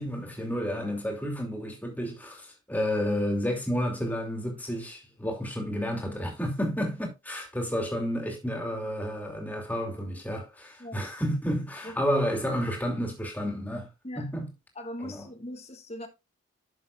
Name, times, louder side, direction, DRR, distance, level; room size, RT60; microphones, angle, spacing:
voice 1, 0.0-13.9 14.2-14.5 15.0-15.3, equal, 10° left, 2.6 m, -31 dB
voice 2, 14.7-16.1, left 1 dB, 30° left, 1.4 m, -40 dB
11.0 x 7.0 x 2.4 m
head